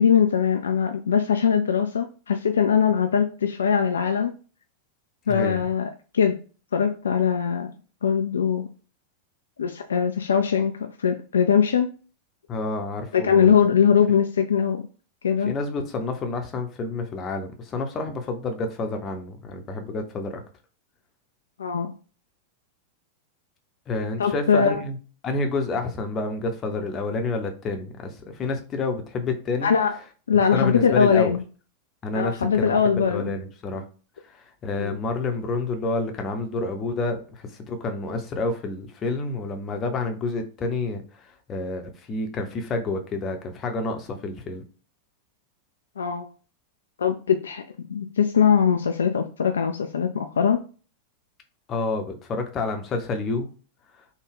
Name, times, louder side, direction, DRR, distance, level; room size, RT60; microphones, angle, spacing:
voice 1, 0.0-4.3 5.3-6.4 6.7-7.7 8.0-8.7 9.6-10.7 11.0-11.9 13.1-14.8 15.2-15.5 21.6-21.9 24.2-24.8 29.6-29.9 30.3-31.4 32.1-33.4 34.8-35.0 46.0-46.3 47.0-50.6, left 7 dB, 70° left, 0.3 m, -21 dB
voice 2, 5.3-5.6 12.5-13.6 15.4-20.4 23.9-25.0 25.2-29.7 30.5-31.3 32.0-32.8 33.0-33.8 34.3-44.6 51.7-53.5, left 3 dB, 30° left, 0.7 m, -29 dB
3.4 x 2.3 x 3.5 m
figure-of-eight pair, 90°, 0 cm